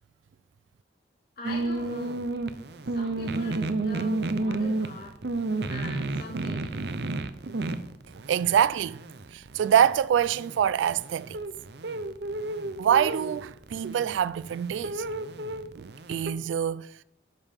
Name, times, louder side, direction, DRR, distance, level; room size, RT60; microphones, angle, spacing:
voice 1, 1.4-2.2 2.8-5.2 5.7-6.8, left 2 dB, 50° left, 2.3 m, -42 dB
sound 1, 1.4-16.3, right 2 dB, 60° right, 0.7 m, -32 dB
voice 2, 8.2-9.0 9.3-11.4 12.8-15.0 15.7-16.9, right 9 dB, 85° right, 0.3 m, -25 dB
11.5 x 5.5 x 5.3 m
head